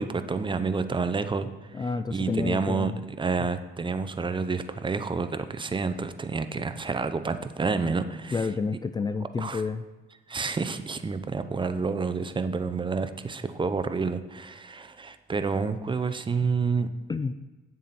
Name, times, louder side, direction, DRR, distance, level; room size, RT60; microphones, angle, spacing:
voice 1, 0.0-1.5 1.8-8.5 9.4-9.6 10.3-16.9, right 4 dB, 25° right, 10 dB, 0.7 m, -29 dB
voice 2, 1.7-3.0 8.3-9.8 17.1-17.3, left 4 dB, 20° left, 11 dB, 0.3 m, -29 dB
9.4 x 7.3 x 4.1 m, 1.3 s
cardioid pair, 90°, 20 cm